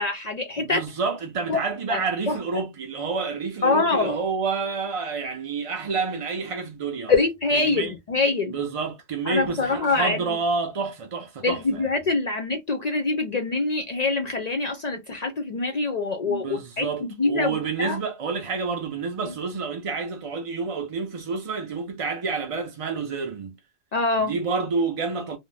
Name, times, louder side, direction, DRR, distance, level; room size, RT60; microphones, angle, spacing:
voice 1, 0.0-0.8 1.5-1.6 1.9-2.0 2.3-2.4 3.6-4.2 7.1-8.5 9.3-10.4 11.4-18.0 19.3-19.4 23.9-24.3, left 3 dB, 55° left, 0.5 m, -24 dB
voice 2, 0.6-7.1 7.5-7.9 8.5-11.9 16.2-23.5 24.2-25.4, right 4 dB, 50° right, 0.4 m, -29 dB
2.5 x 2.0 x 3.1 m
omnidirectional pair, 1.1 m